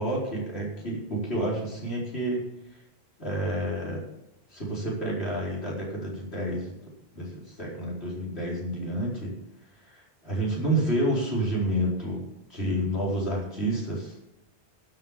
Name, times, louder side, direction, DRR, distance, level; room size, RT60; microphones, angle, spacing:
voice 1, 0.0-2.4 3.2-4.1 4.5-6.8 7.1-9.3 9.8-12.2 12.5-14.1, right 1 dB, 85° left, -4 dB, 5.0 m, -29 dB
12.5 x 7.4 x 7.4 m, 0.90 s
omnidirectional pair, 1.1 m